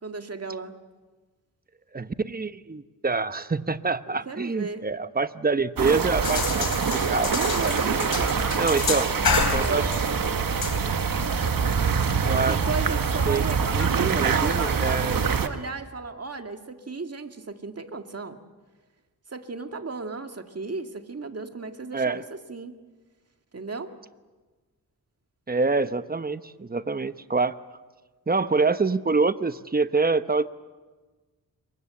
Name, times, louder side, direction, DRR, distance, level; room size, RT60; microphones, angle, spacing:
voice 1, 0.0-0.7 4.1-4.9 6.5-6.6 7.3-8.9 9.3-9.9 12.2-18.4 19.3-22.8 23.5-23.9, right 4 dB, 40° right, 6 dB, 2.0 m, -35 dB
voice 2, 1.9-7.3 7.6-7.7 8.6-9.1 9.5-9.9 12.3-12.6 13.3-13.4 13.8-15.3 21.9-22.2 25.5-27.6 28.3-30.5, right 4 dB, 25° right, 12 dB, 1.0 m, -26 dB
Lagoon ambience, 5.8-15.5, right 6 dB, 65° right, 1.6 m, -25 dB
Shower longer, 6.2-13.2, left 5 dB, 85° left, 3.7 m, -31 dB
27.0 x 23.0 x 7.7 m, 1.3 s
wide cardioid pair, 80°, 36 cm